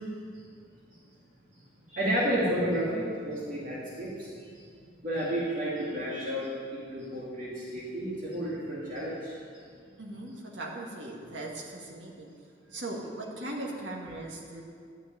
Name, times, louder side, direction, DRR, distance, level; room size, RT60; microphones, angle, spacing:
voice 1, 1.9-4.5 5.0-9.3, equal, 45° right, -7 dB, 2.6 m, -31 dB
voice 2, 10.0-12.3 12.7-14.6, right 2 dB, 80° right, -2 dB, 2.0 m, -39 dB
12.0 x 6.4 x 9.3 m, 2.2 s
head